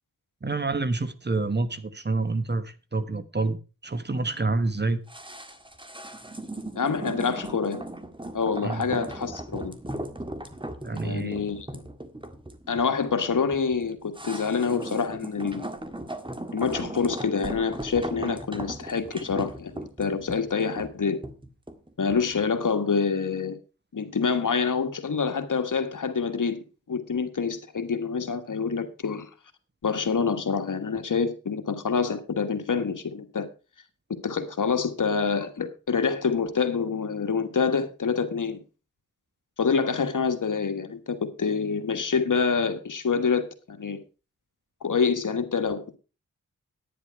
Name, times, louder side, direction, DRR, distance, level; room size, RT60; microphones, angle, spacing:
voice 1, 0.4-3.6 3.8-5.0 8.6-8.9 10.8-11.4, right 3 dB, 30° right, 1.2 m, -28 dB
sound 1, 5.1-22.3 22.6-22.7, right 1 dB, 15° right, 1.8 m, -38 dB
voice 2, 6.8-7.8 8.3-9.7 11.0-11.8 12.7-15.7 16.5-21.2 22.0-23.6 23.9-29.3 29.8-33.5 34.2-38.6 39.6-44.0 44.8-46.0, left 5 dB, 65° left, 1.6 m, -26 dB
10.0 x 9.7 x 4.6 m
cardioid pair, 45°, 34 cm